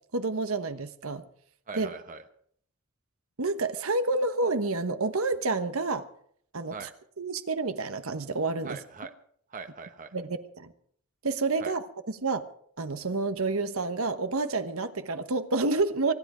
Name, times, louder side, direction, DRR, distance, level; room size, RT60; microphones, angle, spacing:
voice 1, 0.1-1.2 1.8-1.9 3.4-6.1 6.5-6.9 7.2-8.8 10.1-10.7 11.2-12.4 12.8-16.1, right 3 dB, 75° right, 10 dB, 1.2 m, -29 dB
voice 2, 1.7-2.2 6.7-6.9 8.6-9.1 9.5-10.1 11.6-11.7, right 4 dB, 35° right, 8 dB, 1.0 m, -41 dB
24.5 x 10.5 x 5.0 m, 0.64 s
head